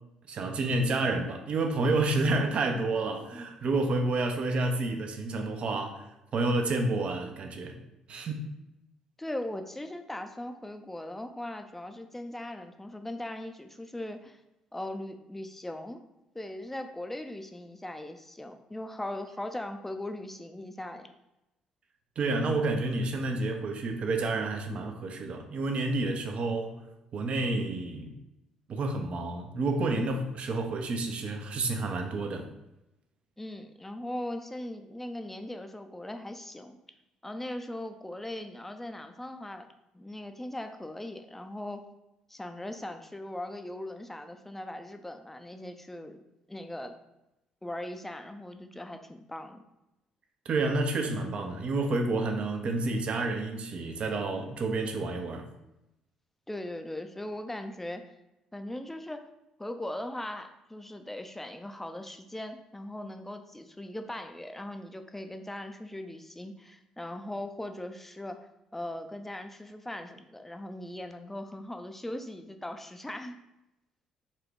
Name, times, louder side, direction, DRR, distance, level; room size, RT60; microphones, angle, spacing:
voice 1, 0.3-6.0 6.3-7.8 8.1-8.4 22.2-26.8 27.1-28.1 28.7-32.5 50.5-55.4, right 2 dB, 55° right, 0.6 m, -29 dB
voice 2, 9.2-14.4 14.7-16.0 16.3-21.1 33.4-36.8 37.2-39.7 39.9-41.8 42.3-46.2 46.5-46.9 47.6-49.6 56.5-58.0 58.5-59.3 59.6-68.4 68.7-73.4, left 1 dB, 10° left, 0.5 m, -39 dB
4.2 x 2.3 x 4.6 m
supercardioid pair, 60°, 2 cm